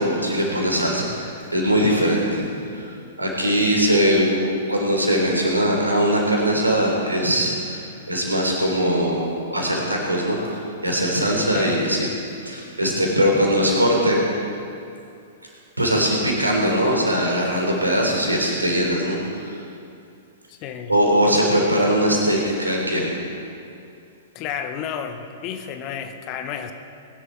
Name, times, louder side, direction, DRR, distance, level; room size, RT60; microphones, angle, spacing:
voice 1, 0.0-2.4 2.7-2.8 3.2-7.8 8.1-12.1 12.4-14.2 15.8-19.2 19.5-19.6 20.9-23.2, equal, 85° right, -1 dB, 3.8 m, -21 dB
voice 2, 20.5-20.9 24.3-26.7, left 8 dB, 35° left, 7 dB, 1.2 m, -31 dB
21.0 x 11.0 x 4.8 m, 2.5 s
figure-of-eight pair, 105°, 0 cm